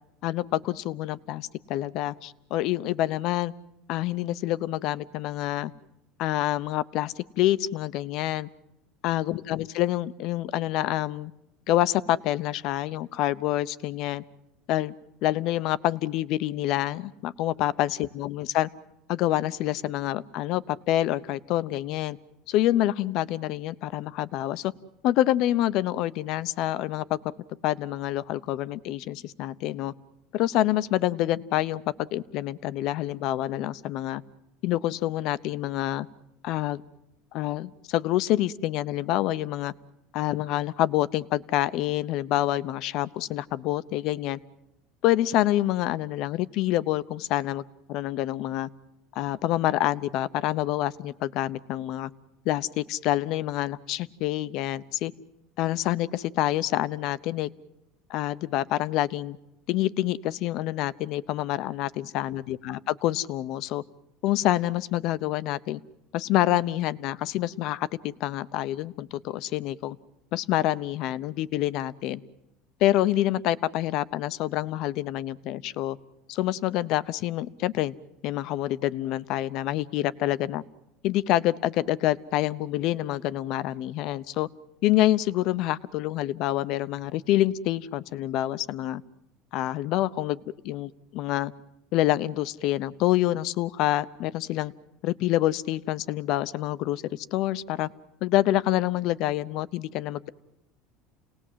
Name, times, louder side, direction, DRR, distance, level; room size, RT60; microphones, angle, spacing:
voice 1, 0.2-3.5 3.9-5.7 6.2-8.5 9.0-11.3 11.7-14.2 14.7-14.9 15.2-18.7 19.1-22.2 22.5-24.7 25.0-27.2 27.6-29.9 30.3-34.2 34.6-36.1 36.4-36.8 37.3-39.7 40.1-44.4 45.0-48.7 49.1-52.1 52.4-55.1 55.6-57.5 58.1-59.4 59.7-63.8 64.2-65.8 66.1-70.0 70.3-72.2 72.8-76.0 76.3-77.9 78.2-80.6 81.0-84.5 84.8-89.0 89.5-91.5 91.9-94.7 95.0-97.9 98.2-100.3, left 14 dB, 60° left, 16 dB, 0.8 m, -27 dB
29.5 x 19.0 x 7.6 m, 0.89 s
supercardioid pair, 130°, 0 cm